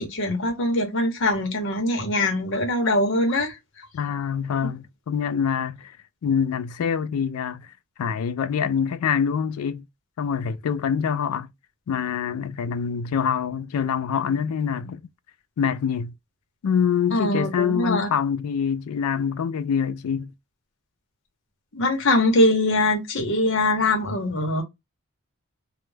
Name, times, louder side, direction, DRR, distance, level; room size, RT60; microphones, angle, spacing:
voice 1, 0.0-3.9 17.1-18.1 21.7-24.6, left 1 dB, 55° left, 0.8 m, -22 dB
voice 2, 3.9-6.0 6.2-7.7 8.0-9.8 10.2-11.5 11.9-15.0 15.6-16.1 16.6-20.3, left 7 dB, 75° left, 0.3 m, -25 dB
2.1 x 2.1 x 3.2 m
head